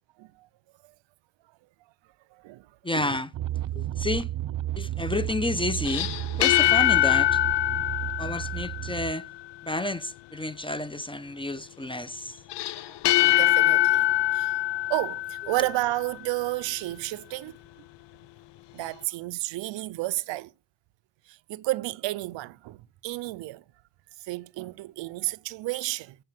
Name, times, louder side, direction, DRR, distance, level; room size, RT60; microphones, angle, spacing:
voice 1, 2.3-2.7 2.9-3.2 12.6-13.0 13.2-14.1 14.3-14.6 14.9-17.6 18.7-20.5 21.3-23.6 24.2-26.2, right 19 dB, 80° right, 0.7 m, -32 dB
voice 2, 2.8-3.3 3.7-4.3 4.8-6.1 6.4-7.4 8.2-9.3 9.6-12.4, left 2 dB, 10° left, 0.8 m, -30 dB
sound 1, 3.3-9.1, right 13 dB, 45° right, 0.6 m, -32 dB
sound 2, 5.7-9.3 12.5-16.0, left 16 dB, 70° left, 0.6 m, -24 dB
15.5 x 6.8 x 9.0 m
cardioid pair, 95°, 44 cm